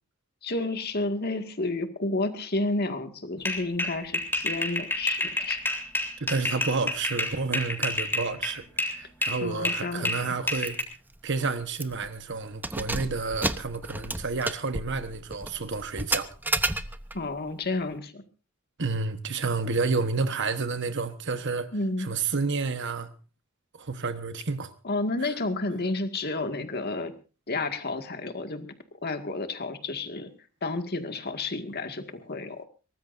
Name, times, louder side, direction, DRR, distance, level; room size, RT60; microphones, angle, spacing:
voice 1, 0.4-5.6 9.4-10.4 17.1-18.2 21.7-22.1 24.8-27.1 27.5-28.7 29.0-30.3 30.6-32.6, left 2 dB, 50° left, 2.0 m, -31 dB
sound 1, 3.4-9.0 9.2-10.8, left 1 dB, 10° left, 3.7 m, -29 dB
voice 2, 6.2-10.8 11.2-16.3 18.8-21.7 22.0-23.1 23.8-24.7, right 4 dB, 60° right, 1.3 m, -30 dB
Keys jangling, 10.6-10.8 11.2-11.3 11.7-12.1 12.5-17.2, right 2 dB, 10° right, 0.8 m, -31 dB
23.0 x 19.0 x 2.7 m
head